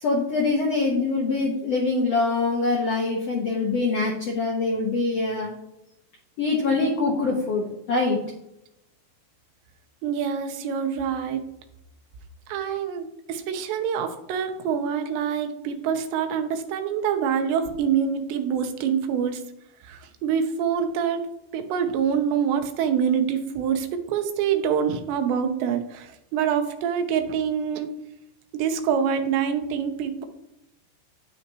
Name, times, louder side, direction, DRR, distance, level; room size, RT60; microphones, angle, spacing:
voice 1, 0.0-5.6 6.4-8.2, left 3 dB, 75° left, -1 dB, 1.5 m, -24 dB
voice 2, 10.0-11.4 12.5-19.4 19.8-21.3 21.5-27.9 28.5-30.3, right 7 dB, 80° right, 7 dB, 3.1 m, -25 dB
9.6 x 9.2 x 3.0 m, 0.85 s
omnidirectional pair, 5.0 m